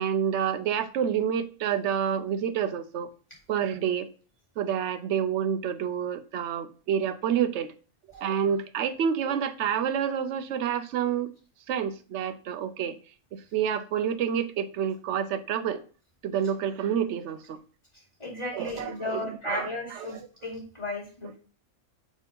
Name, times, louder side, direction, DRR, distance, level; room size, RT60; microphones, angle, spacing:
voice 1, 0.0-3.1 3.5-4.1 4.6-7.7 8.1-11.3 11.7-13.0 13.3-15.8 16.2-17.6 18.5-20.2, right 8 dB, 65° right, 0.8 m, -28 dB
voice 2, 18.2-21.4, left 2 dB, 20° left, 3.2 m, -35 dB
6.7 x 3.6 x 5.2 m
omnidirectional pair, 1.4 m